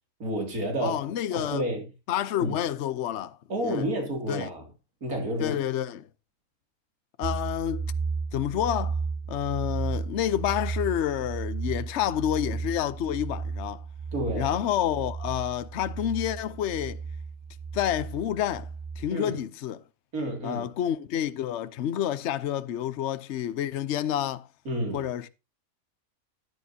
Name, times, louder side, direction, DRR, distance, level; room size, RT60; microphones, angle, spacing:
voice 1, 0.2-1.0 1.3-1.8 2.4-2.6 3.5-4.7 5.0-5.6 14.1-14.6 19.1-19.4 20.1-20.7 24.6-25.1, right 1 dB, 85° right, 3.2 m, -30 dB
voice 2, 0.8-1.6 2.1-3.4 3.6-3.9 4.3-4.5 5.4-6.1 7.2-7.9 8.3-9.0 9.3-13.8 14.3-17.0 17.7-18.7 19.0-19.8 20.4-24.5 24.9-25.3, left 11 dB, 60° left, 0.9 m, -29 dB
sound 1, 7.2-19.1, right 5 dB, 50° right, 0.4 m, -34 dB
13.5 x 11.0 x 2.8 m
omnidirectional pair, 1.5 m